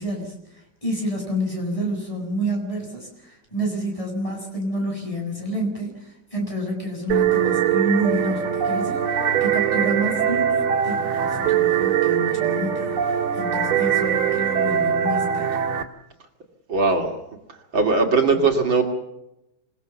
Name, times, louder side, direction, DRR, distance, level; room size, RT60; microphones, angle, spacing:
voice 1, 0.0-15.6 18.3-18.5, equal, 15° left, 1 dB, 7.1 m, -29 dB
sound 1, 7.1-15.8, right 9 dB, 90° right, 2.8 m, -22 dB
voice 2, 16.7-17.1 17.7-18.8, right 4 dB, 65° right, 2 dB, 3.2 m, -19 dB
28.0 x 18.0 x 7.1 m, 0.88 s
omnidirectional pair, 2.3 m